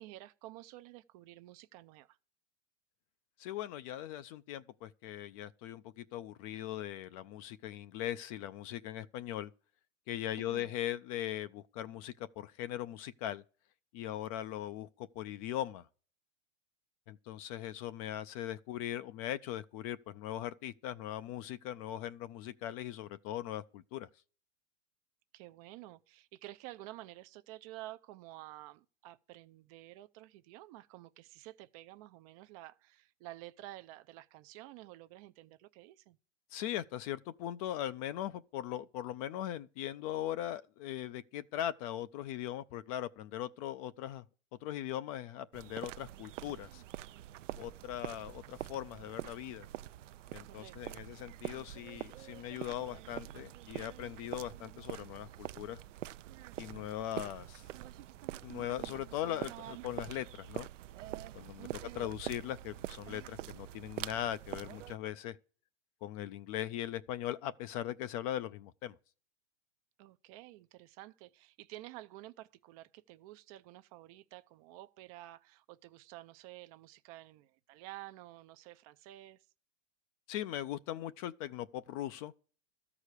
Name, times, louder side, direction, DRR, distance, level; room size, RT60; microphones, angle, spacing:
voice 1, 0.0-2.2 10.4-10.7 25.3-36.2 50.4-51.0 61.6-62.2 70.0-79.5, right 16 dB, 30° right, 0.4 m, -51 dB
voice 2, 3.4-9.5 10.1-13.4 13.9-15.9 17.1-24.1 36.5-44.2 44.6-46.8 47.6-49.7 50.3-55.8 56.6-57.7 58.4-60.7 61.3-61.7 61.9-65.4 66.0-68.9 80.3-82.3, left 12 dB, 30° left, 0.4 m, -40 dB
sound 1, 45.5-65.0, right 13 dB, 80° right, 0.6 m, -45 dB
13.0 x 4.9 x 8.2 m
hypercardioid pair, 135°, 37 cm